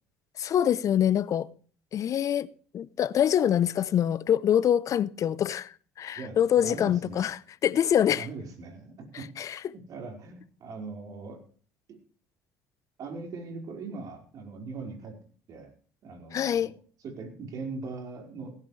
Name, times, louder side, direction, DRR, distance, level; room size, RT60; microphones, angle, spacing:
voice 1, 0.4-1.5 1.9-2.5 2.7-7.4 7.6-8.3 9.4-9.6 16.3-16.7, left 10 dB, 50° left, 0.8 m, -25 dB
voice 2, 6.1-7.3 8.1-9.3 9.7-11.4 11.9-12.0 13.0-15.2 15.5-15.7 16.0-16.7 17.0-18.6, right 3 dB, 55° right, 4.9 m, -40 dB
16.5 x 14.5 x 3.3 m
hypercardioid pair, 65°, 7 cm